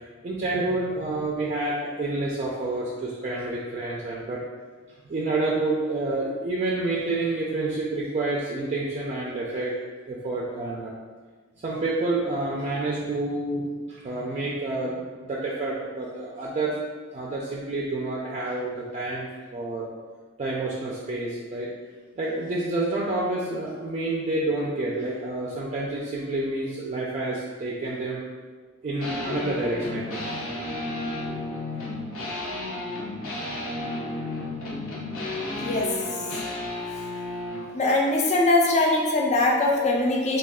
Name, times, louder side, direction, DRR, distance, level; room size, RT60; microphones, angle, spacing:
voice 1, 0.2-4.4 5.0-9.7 10.1-10.9 11.6-16.8 17.1-19.8 20.4-21.7 22.2-28.2 28.8-30.3 31.3-31.4, right 2 dB, 35° right, -4 dB, 0.4 m, -28 dB
sound 1, 29.0-37.7, left 2 dB, 80° left, 0.8 m, -32 dB
voice 2, 37.7-40.4, left 2 dB, 35° left, -1 dB, 0.4 m, -21 dB
3.2 x 2.3 x 3.5 m, 1.4 s
head